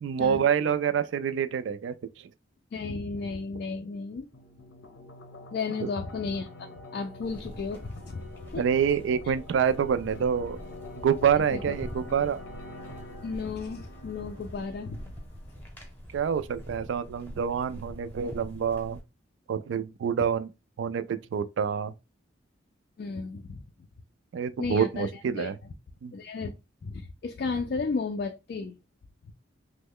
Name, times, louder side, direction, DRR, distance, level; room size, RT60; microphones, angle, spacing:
voice 1, 0.0-1.9 8.6-10.6 11.0-12.4 16.1-19.0 19.5-20.5 20.8-21.9 24.3-25.5 26.0-26.1, right 7 dB, 75° right, 0.3 m, -27 dB
voice 2, 2.7-4.3 5.5-8.2 8.5-8.7 11.5-11.7 13.2-15.1 23.0-23.6 24.6-25.5 26.1-26.5 26.8-28.8, left 4 dB, 55° left, 0.3 m, -33 dB
sound 1, 4.3-15.3, left 1 dB, 85° left, 0.7 m, -46 dB
sound 2, 7.2-19.0, equal, 10° left, 0.8 m, -45 dB
3.1 x 2.1 x 3.5 m
head